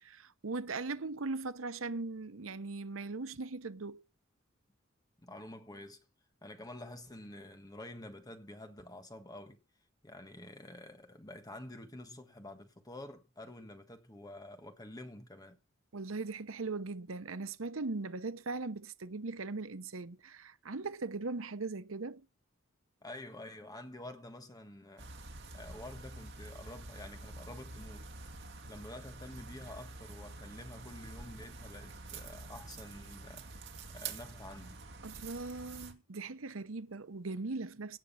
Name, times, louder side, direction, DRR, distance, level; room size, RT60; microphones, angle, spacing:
voice 1, 0.0-4.0 15.9-22.2 35.0-38.0, right 3 dB, 85° right, 0.9 m, -39 dB
voice 2, 5.2-6.0 6.4-9.6 10.0-15.6 23.0-25.1 25.5-28.1 28.6-33.6 33.9-34.8, left 1 dB, 20° left, 1.5 m, -49 dB
sound 1, 25.0-35.9, right 3 dB, 65° right, 2.4 m, -47 dB
17.5 x 6.3 x 5.7 m
head